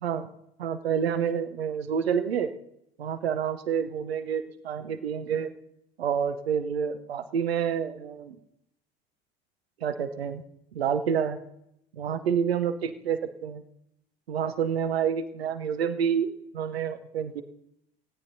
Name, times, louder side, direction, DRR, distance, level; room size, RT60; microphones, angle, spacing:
voice 1, 0.6-2.5 3.0-5.5 6.0-8.4 9.8-10.4 10.7-11.4 11.9-13.6 14.3-17.4, right 7 dB, 80° right, 11 dB, 0.9 m, -28 dB
28.5 x 9.7 x 2.7 m, 0.78 s
figure-of-eight pair, 70°, 31 cm